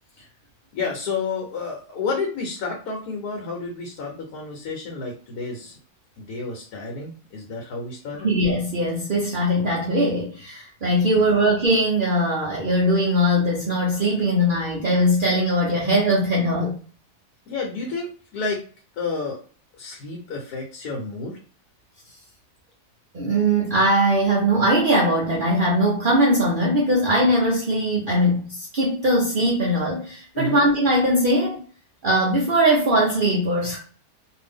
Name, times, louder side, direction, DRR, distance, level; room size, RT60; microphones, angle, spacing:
voice 1, 0.7-5.8 6.2-8.3 11.1-11.3 17.5-18.7 19.0-19.4 19.7-21.4 30.3-30.6, left 4 dB, 75° left, 0 dB, 1.2 m, -30 dB
voice 2, 8.2-16.7 23.1-31.6 32.0-33.8, equal, 65° right, -3 dB, 0.5 m, -20 dB
2.6 x 2.6 x 3.4 m, 0.42 s
omnidirectional pair, 1.7 m